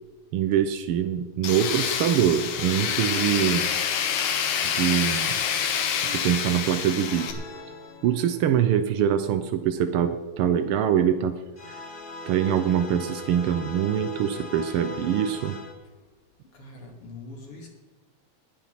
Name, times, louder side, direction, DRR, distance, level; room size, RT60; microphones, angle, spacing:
voice 1, 0.3-3.7 4.6-5.4 6.1-7.4 8.0-11.4 12.3-15.6, right 9 dB, 80° right, 8 dB, 1.2 m, -24 dB
Tools, 1.4-7.3, left 8 dB, 80° left, 2.4 m, -27 dB
sound 1, 7.1-9.0 11.6-15.7, left 3 dB, 35° left, 0.8 m, -40 dB
voice 2, 16.5-17.7, left 2 dB, 50° left, 0 dB, 3.5 m, -43 dB
19.5 x 7.3 x 5.8 m, 1.3 s
omnidirectional pair, 3.3 m